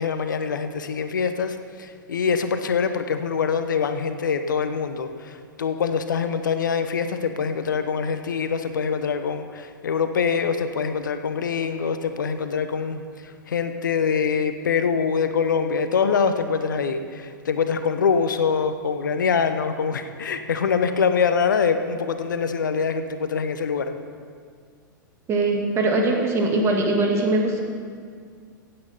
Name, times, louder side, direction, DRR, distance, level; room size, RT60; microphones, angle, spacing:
voice 1, 0.0-23.9, left 6 dB, 65° left, 9 dB, 0.9 m, -24 dB
voice 2, 25.3-27.6, right 2 dB, 25° right, 1 dB, 2.3 m, -21 dB
16.0 x 8.8 x 5.6 m, 2.1 s
figure-of-eight pair, 100°, 11 cm